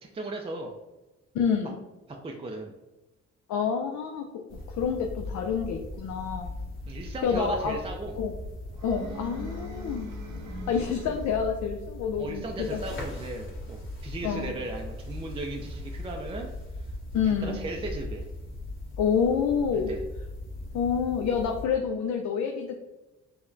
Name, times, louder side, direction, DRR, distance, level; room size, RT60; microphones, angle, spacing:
voice 1, 0.0-0.7 2.2-2.7 6.9-8.2 12.2-16.5 17.2-18.3 19.9-20.0, right 2 dB, 20° right, 1 dB, 0.3 m, -36 dB
voice 2, 1.3-1.8 3.5-6.5 7.2-7.8 8.2-8.3 8.8-10.1 10.7-12.8 14.2-14.5 17.1-17.6 19.0-19.9 20.7-22.9, left 6 dB, 70° left, 3 dB, 0.5 m, -28 dB
sound 1, 4.5-21.7, left 1 dB, 40° left, 1.4 m, -39 dB
sound 2, 8.7-11.6, equal, 70° right, 0.7 m, -42 dB
4.7 x 2.1 x 2.6 m, 1.1 s
cardioid pair, 90°, 30 cm